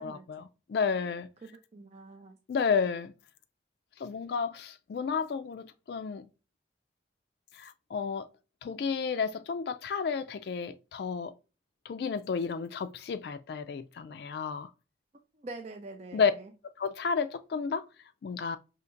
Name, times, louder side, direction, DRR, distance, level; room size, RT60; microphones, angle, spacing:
voice 1, 0.0-1.3 2.5-3.1 4.0-6.3 7.5-8.3 8.6-11.3 11.9-14.7 16.1-16.3 16.8-17.8 18.2-18.6, left 5 dB, 60° left, 0.3 m, -31 dB
voice 2, 1.4-2.4 15.3-16.5, right 2 dB, 35° right, 0.4 m, -45 dB
5.6 x 2.8 x 2.5 m
head